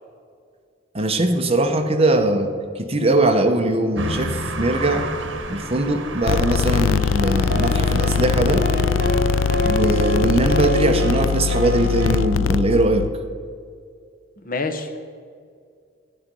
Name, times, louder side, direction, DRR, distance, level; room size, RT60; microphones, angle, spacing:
voice 1, 0.9-5.1 5.5-8.7 9.6-13.1, right 2 dB, 30° right, 5 dB, 1.0 m, -21 dB
sound 1, 4.0-11.0, right 1 dB, 80° right, 1.2 m, -33 dB
sound 2, 6.3-13.1, left 7 dB, 70° left, 0.3 m, -22 dB
sound 3, 7.2-12.2, right 1 dB, 55° right, 2.4 m, -26 dB
voice 2, 14.4-15.0, left 3 dB, 45° left, 7 dB, 1.1 m, -27 dB
12.0 x 10.5 x 5.4 m, 2.2 s
head